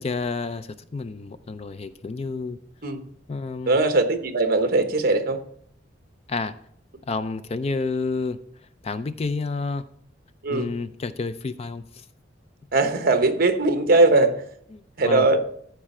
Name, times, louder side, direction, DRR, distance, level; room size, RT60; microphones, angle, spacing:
voice 1, 0.0-2.6 3.3-3.8 6.3-6.5 7.1-8.4 8.8-9.8 10.5-12.0 14.7-15.3, left 4 dB, 35° left, 13 dB, 0.4 m, -30 dB
voice 2, 3.7-5.4 10.4-10.7 12.7-14.4 15.0-15.4, right 2 dB, 50° right, 7 dB, 1.0 m, -20 dB
13.5 x 4.9 x 4.3 m, 0.65 s
head